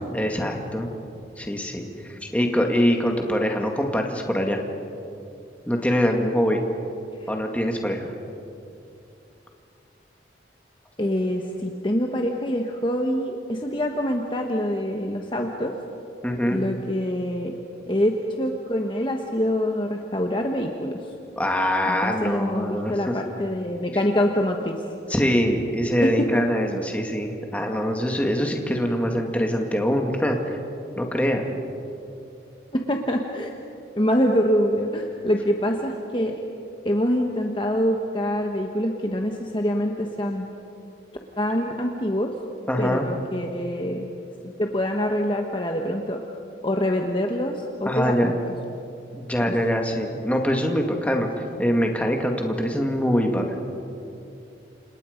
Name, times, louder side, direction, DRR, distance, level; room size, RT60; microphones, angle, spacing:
voice 1, 0.1-0.9 1.4-4.6 5.7-6.6 7.3-8.1 16.2-16.6 21.4-23.0 25.1-30.6 31.0-31.5 42.7-43.1 47.9-48.3 49.1-53.5, equal, 10° left, 2 dB, 2.1 m, -24 dB
voice 2, 11.0-15.8 16.5-17.6 17.9-21.0 21.9-24.8 26.0-26.3 32.7-33.5 33.9-36.4 36.8-40.5 41.4-42.3 42.8-44.1 44.6-46.2 46.6-48.3 49.5-49.6, equal, 25° left, 2 dB, 1.2 m, -25 dB
29.5 x 27.0 x 5.3 m, 2.7 s
head